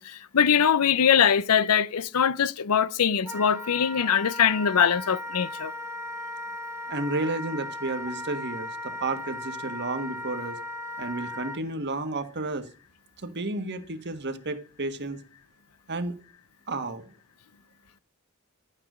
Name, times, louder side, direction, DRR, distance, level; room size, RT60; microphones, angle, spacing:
voice 1, 0.0-5.7, left 8 dB, 85° left, 0.6 m, -22 dB
Wind instrument woodwind instrument, 3.2-11.6, left 1 dB, 15° right, 1.6 m, -37 dB
voice 2, 6.9-10.6 11.0-12.7 13.2-15.2 15.9-16.1 16.7-17.0, right 2 dB, 50° right, 1.5 m, -32 dB
12.0 x 8.9 x 6.2 m
head